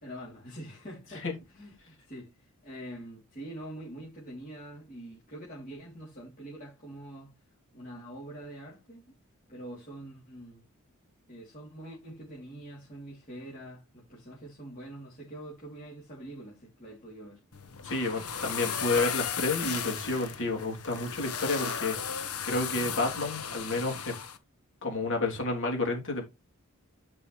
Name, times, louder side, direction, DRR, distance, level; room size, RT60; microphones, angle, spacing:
voice 1, 0.0-1.3 1.5-7.3 7.7-9.0 9.5-10.6 11.3-17.4, right 1 dB, 40° left, 3.3 m, -45 dB
sound 1, 17.5-24.4, left 7 dB, 90° left, 1.1 m, -35 dB
voice 2, 17.8-24.1 24.8-26.2, left 2 dB, 60° left, 3.2 m, -30 dB
11.0 x 5.4 x 3.3 m
head